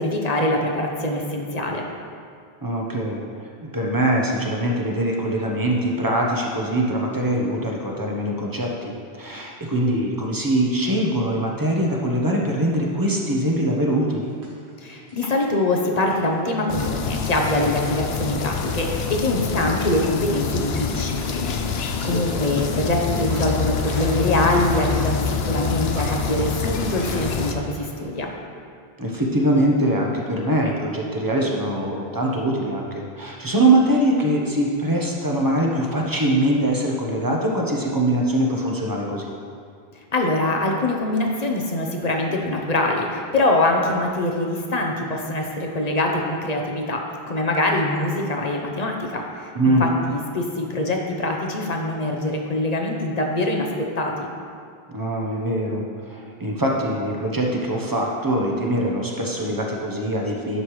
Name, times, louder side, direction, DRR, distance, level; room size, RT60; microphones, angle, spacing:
voice 1, 0.0-1.8 14.8-28.3 40.1-54.2, left 1 dB, 40° left, 1 dB, 0.9 m, -24 dB
voice 2, 2.6-3.2 3.6-14.3 22.0-22.2 29.0-32.9 33.2-39.3 49.5-49.8 54.9-55.8 56.1-60.6, right 1 dB, 20° right, -1 dB, 0.9 m, -22 dB
sound 1, 14.2-15.6 16.0-17.1 17.8-19.0 19.3-19.5 20.3-20.8 21.3-21.9 22.4-28.3, right 1 dB, 85° right, 1.8 m, -41 dB
sound 2, 16.7-27.5, left 6 dB, 75° left, 0.9 m, -26 dB
11.0 x 6.5 x 3.2 m, 2.2 s
omnidirectional pair, 1.1 m